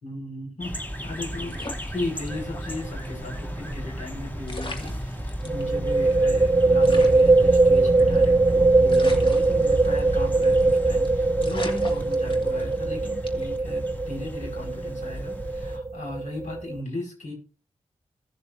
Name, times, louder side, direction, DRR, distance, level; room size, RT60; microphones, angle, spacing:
voice 1, 0.0-1.6 1.9-17.3, left 2 dB, 80° left, 1 dB, 4.9 m, -36 dB
sound 1, 0.6-15.8, equal, 15° left, 2.4 m, -35 dB
sound 2, 1.5-2.7 3.0-3.1 4.1-4.2 4.5-5.6 6.1-6.2 6.4-6.5 6.8-8.4 8.9-10.1 10.4-10.7 11.0-11.1 11.4-12.8 13.3-13.6, left 2 dB, 40° left, 2.3 m, -39 dB
sound 3, 2.3-2.6 2.9-3.0 5.4-16.8, right 3 dB, 20° right, 0.4 m, -21 dB
17.5 x 6.9 x 2.7 m, 0.36 s
cardioid pair, 50°, 13 cm